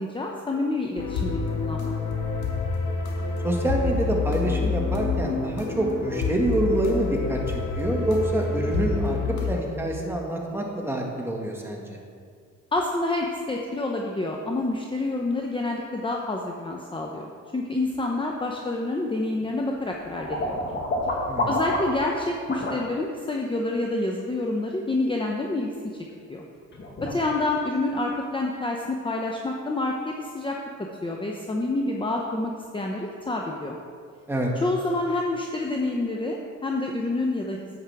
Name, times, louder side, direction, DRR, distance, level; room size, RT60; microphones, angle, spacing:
voice 1, 0.0-1.9 12.7-20.6 21.5-26.4 27.0-30.6 31.0-33.8 34.6-37.8, left 2 dB, 15° left, 0 dB, 0.8 m, -28 dB
sound 1, 1.0-9.5, left 4 dB, 80° left, 1.5 m, -28 dB
voice 2, 3.4-7.4 7.8-12.0 21.3-21.5 34.3-34.5, right 1 dB, 10° right, -1 dB, 1.8 m, -26 dB
sound 2, 19.4-22.1 22.5-22.8 26.3-26.4 26.7-27.2, left 1 dB, 35° left, 1.8 m, -28 dB
11.0 x 8.1 x 3.5 m, 2.1 s
cardioid pair, 90°, 30 cm